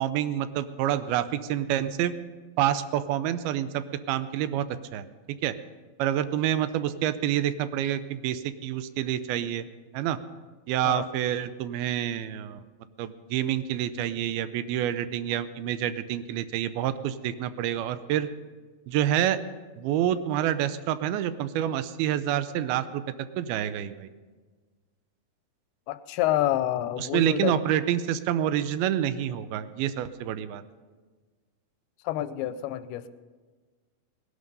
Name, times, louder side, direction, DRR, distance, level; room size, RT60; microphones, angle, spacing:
voice 1, 0.0-2.1 2.6-4.7 4.9-5.0 5.4-5.5 6.0-9.7 9.9-10.2 10.7-12.6 13.0-18.3 18.9-19.4 19.8-23.0 23.4-24.1 27.0-30.6, right 11 dB, 80° right, 13 dB, 2.4 m, -27 dB
voice 2, 25.9-27.6 32.0-33.1, left 13 dB, 90° left, 13 dB, 2.6 m, -28 dB
18.0 x 11.0 x 5.4 m, 1.4 s
omnidirectional pair, 4.5 m